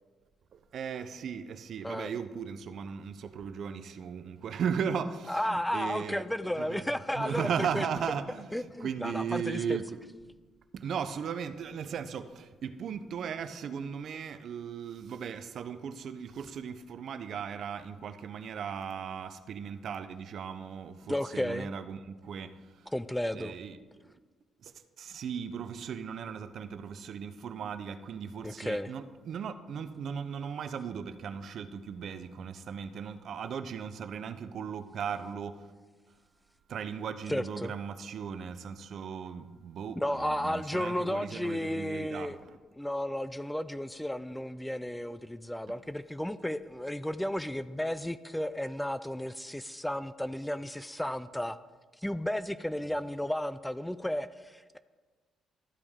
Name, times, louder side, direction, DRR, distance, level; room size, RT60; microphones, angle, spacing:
voice 1, 0.5-6.2 6.5-6.9 7.1-10.0 10.7-22.8 23.3-24.1 24.6-24.7 25.0-35.7 36.7-42.6, right 7 dB, 65° right, 11 dB, 0.5 m, -37 dB
voice 2, 5.3-7.9 8.5-9.8 21.1-21.7 22.9-23.5 28.4-28.9 37.3-37.7 40.0-42.4 42.8-51.6 52.0-54.8, left 1 dB, 5° left, 14 dB, 0.3 m, -33 dB
13.0 x 5.1 x 3.6 m, 1.3 s
cardioid pair, 90°, 0 cm